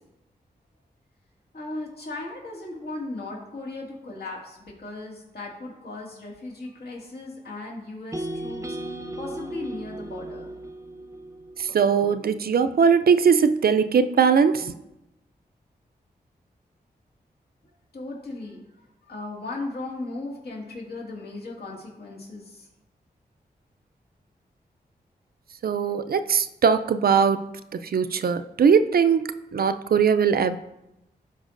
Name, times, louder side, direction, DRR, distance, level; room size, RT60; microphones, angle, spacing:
voice 1, 1.5-10.6 17.9-18.7 19.0-22.7, left 2 dB, 65° left, -3 dB, 2.0 m, -37 dB
sound 1, 8.1-12.3, right 1 dB, 15° right, 0.6 m, -36 dB
voice 2, 11.6-14.7 25.6-27.5 27.8-29.2 29.5-30.6, right 6 dB, 60° right, 11 dB, 0.4 m, -20 dB
12.5 x 4.6 x 2.6 m, 0.91 s
cardioid pair, 50°, 17 cm